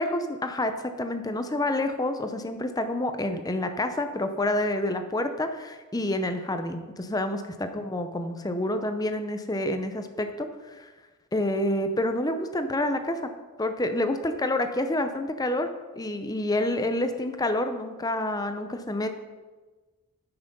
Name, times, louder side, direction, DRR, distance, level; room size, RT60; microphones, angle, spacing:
voice 1, 0.0-10.9 11.3-13.2 13.6-15.7 16.0-19.1, left 1 dB, 15° left, 7 dB, 0.6 m, -28 dB
10.0 x 5.9 x 5.4 m, 1.3 s
head